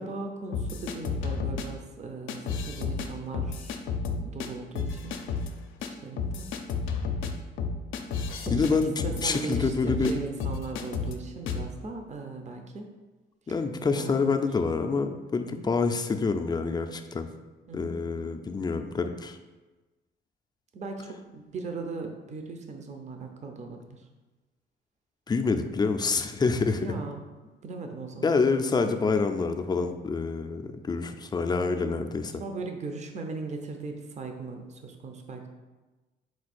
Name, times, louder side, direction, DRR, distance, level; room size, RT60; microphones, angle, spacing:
voice 1, 0.0-3.8 4.2-5.3 5.8-6.5 8.4-12.9 13.9-14.4 15.4-15.7 17.7-17.9 20.7-24.0 26.8-27.2 27.6-28.4 32.3-35.5, right 3 dB, 35° right, 4 dB, 0.6 m, -38 dB
sound 1, 0.5-1.7 2.3-3.1 3.3-4.5 4.8-5.5 5.8-5.9 6.2-10.1 10.4-11.2 11.5-11.7, left 5 dB, 80° left, 0.4 m, -31 dB
voice 2, 8.5-10.1 13.5-17.3 17.7-19.4 25.3-26.8 28.2-32.3, left 4 dB, 20° left, 6 dB, 0.3 m, -27 dB
4.4 x 2.3 x 4.2 m, 1.2 s
cardioid pair, 90°, 20 cm